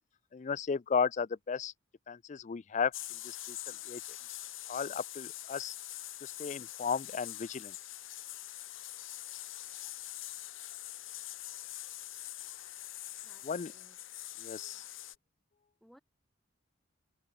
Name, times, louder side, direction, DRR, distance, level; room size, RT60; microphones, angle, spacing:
voice 1, 0.3-1.7 2.1-2.9 3.2-4.0 4.7-5.7 6.2-7.7 13.5-13.7 14.4-14.8, left 6 dB, 35° left, 0.4 m, -34 dB
sound 1, 2.9-15.2, left 14 dB, 80° left, 3.6 m, -44 dB
voice 2, 13.2-14.0 15.8-16.0, equal, ahead, 3.7 m, -62 dB
head